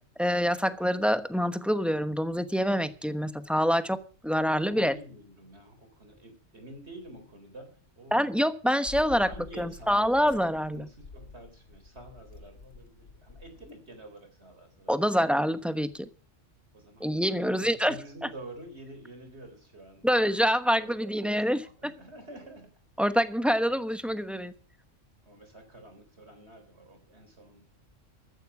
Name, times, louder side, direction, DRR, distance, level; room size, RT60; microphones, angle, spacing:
voice 1, 0.2-4.0 4.2-4.9 8.1-9.3 9.6-10.9 14.9-16.1 17.0-17.9 20.0-21.6 23.0-24.5, equal, ahead, 10 dB, 0.9 m, -26 dB
voice 2, 4.7-8.3 9.3-10.3 10.7-15.4 16.7-20.3 20.8-22.7 25.2-27.6, right 1 dB, 60° right, 7 dB, 4.3 m, -48 dB
sound 1, 8.9-13.7, left 4 dB, 75° left, 2.0 m, -48 dB
14.5 x 13.5 x 4.8 m, 0.40 s
omnidirectional pair, 1.3 m